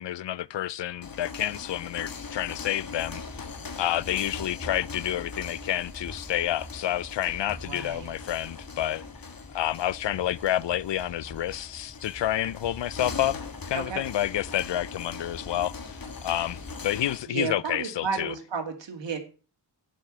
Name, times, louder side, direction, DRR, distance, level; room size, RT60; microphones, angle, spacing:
voice 1, 0.0-3.2 3.8-9.0 9.5-13.4 13.7-15.7 16.2-18.3, left 12 dB, 80° left, 0.6 m, -29 dB
sound 1, 0.9-17.3, left 5 dB, 50° left, 1.7 m, -41 dB
sound 2, 3.0-16.9, left 1 dB, 15° left, 2.1 m, -46 dB
voice 2, 7.6-8.2 13.7-14.0 17.3-19.2, right 5 dB, 85° right, 2.6 m, -33 dB
11.5 x 6.5 x 7.4 m
wide cardioid pair, 95°, 43 cm